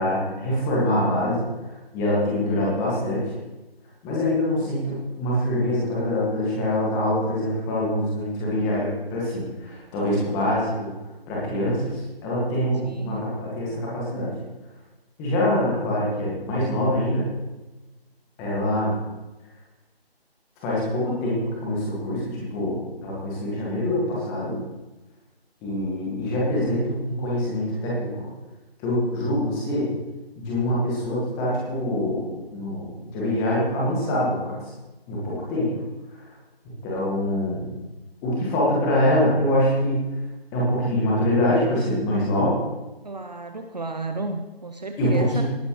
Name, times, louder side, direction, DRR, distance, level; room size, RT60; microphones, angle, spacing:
voice 1, 0.0-3.2 4.0-10.9 11.3-14.3 15.2-17.2 18.4-19.0 20.6-24.6 25.6-28.3 28.8-29.9 30.4-34.6 35.1-35.7 36.6-37.7 38.2-40.1 40.5-42.6 45.0-45.4, left 1 dB, 10° left, -5 dB, 1.9 m, -24 dB
voice 2, 12.8-13.3 43.0-45.4, right 3 dB, 40° right, 5 dB, 0.8 m, -32 dB
18.5 x 9.5 x 3.2 m, 1.1 s
figure-of-eight pair, 160°, 31 cm